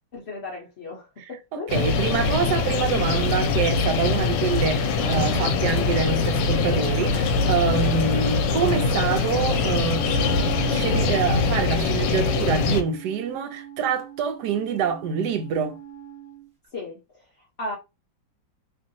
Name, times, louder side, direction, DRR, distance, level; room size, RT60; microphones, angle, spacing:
voice 1, 0.1-2.0 16.7-17.8, left 2 dB, 60° left, 0.6 m, -36 dB
voice 2, 1.5-10.1 10.7-15.8, right 6 dB, 70° right, 1.1 m, -26 dB
sound 1, 1.7-12.8, left 4 dB, 75° left, 1.2 m, -23 dB
sound 2, 4.9-13.0, right 7 dB, 85° right, 1.3 m, -37 dB
Wind instrument woodwind instrument, 9.8-16.5, right 5 dB, 40° right, 1.1 m, -39 dB
3.0 x 2.6 x 2.6 m
omnidirectional pair, 2.0 m